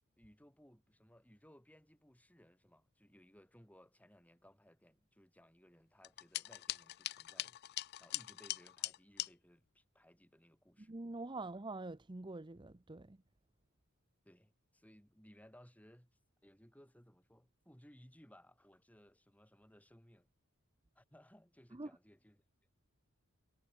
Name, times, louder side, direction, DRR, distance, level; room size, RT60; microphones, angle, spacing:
voice 1, 0.2-10.9 14.2-20.3 20.9-22.4, equal, 5° left, 6.7 m, -63 dB
sound 1, 6.0-9.3, left 16 dB, 50° left, 0.3 m, -42 dB
voice 2, 10.8-13.2 21.7-21.9, right 2 dB, 20° right, 0.7 m, -45 dB
head